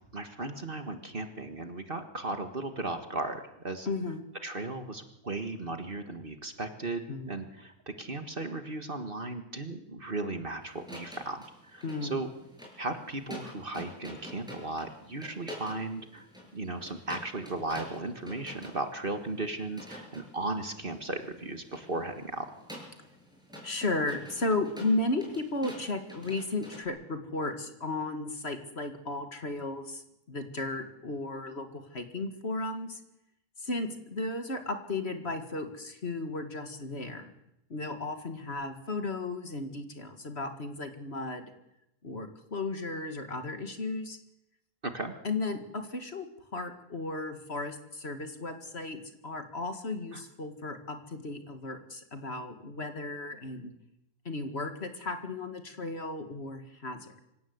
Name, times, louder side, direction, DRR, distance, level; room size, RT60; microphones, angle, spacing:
voice 1, 0.1-3.9 4.4-12.3 12.8-16.3 16.5-22.5 44.8-45.1 50.1-50.2, right 2 dB, 35° right, 7 dB, 1.7 m, -36 dB
voice 2, 3.9-4.2 7.1-7.4 11.8-12.2 23.6-33.0 33.6-37.3 37.7-41.5 42.0-44.2 45.2-46.3 46.5-53.7 54.3-57.2, left 2 dB, 45° left, 7 dB, 2.1 m, -34 dB
sound 1, 10.6-26.8, left 1 dB, ahead, 7.2 m, -48 dB
25.5 x 17.0 x 8.0 m, 0.85 s
omnidirectional pair, 1.6 m